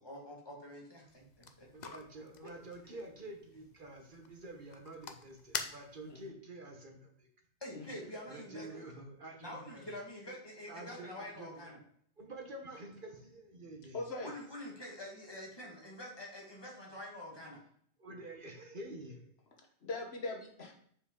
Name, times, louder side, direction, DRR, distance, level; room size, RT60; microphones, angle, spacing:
voice 1, 0.0-2.6 7.6-8.9 9.4-11.8 14.2-17.6, left 1 dB, 20° left, -2 dB, 1.8 m, -47 dB
sound 1, 1.1-6.3, left 6 dB, 50° left, 0.6 m, -47 dB
voice 2, 1.7-7.3 8.3-9.9 10.7-11.6 12.2-14.0 18.0-19.2, right 2 dB, 50° right, 2 dB, 1.2 m, -48 dB
voice 3, 6.0-6.3 7.7-8.0 13.9-14.3 19.6-20.7, left 2 dB, 65° left, 2 dB, 1.4 m, -41 dB
7.0 x 5.1 x 3.7 m, 0.63 s
omnidirectional pair, 1.2 m